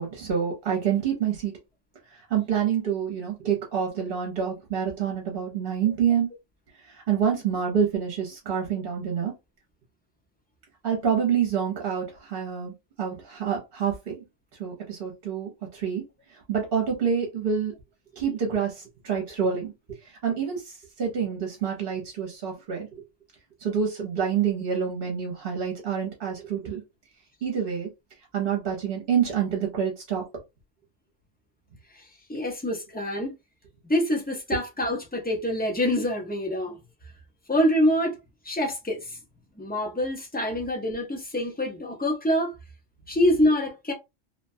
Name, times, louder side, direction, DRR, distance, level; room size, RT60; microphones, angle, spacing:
voice 1, 0.0-1.5 2.1-6.3 6.9-9.3 10.8-14.2 14.6-16.0 16.3-17.7 18.2-19.7 20.0-22.9 23.6-26.8 27.4-27.9 28.3-30.2, right 7 dB, 50° right, 0.9 m, -27 dB
voice 2, 32.3-33.3 33.9-36.8 37.5-38.2 38.4-39.2 39.6-42.5 43.1-43.9, left 1 dB, 15° left, 0.3 m, -25 dB
2.8 x 2.2 x 2.6 m
omnidirectional pair, 1.3 m